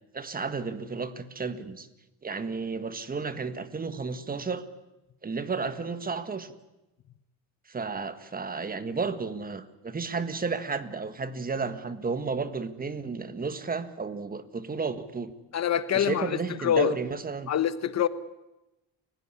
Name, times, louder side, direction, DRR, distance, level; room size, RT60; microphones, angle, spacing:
voice 1, 0.1-1.9 2.2-4.6 5.2-6.5 7.7-15.3 15.9-17.5, right 4 dB, 25° right, 1.6 m, -32 dB
voice 2, 15.5-16.9 17.5-18.1, left 9 dB, 50° left, 1.2 m, -25 dB
29.5 x 16.5 x 9.8 m
cardioid pair, 120°, 35 cm